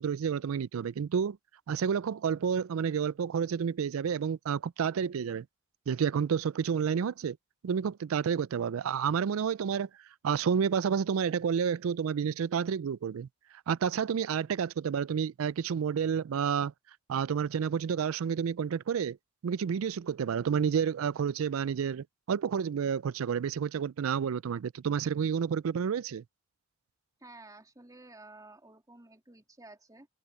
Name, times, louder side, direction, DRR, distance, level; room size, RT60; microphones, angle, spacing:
voice 1, 0.0-1.4 1.7-5.5 5.9-7.4 7.6-9.9 10.2-13.3 13.7-16.7 17.1-19.2 19.4-26.2, right 7 dB, 80° right, 0.4 m, -30 dB
voice 2, 27.2-30.1, right 2 dB, 15° right, 3.0 m, -52 dB
head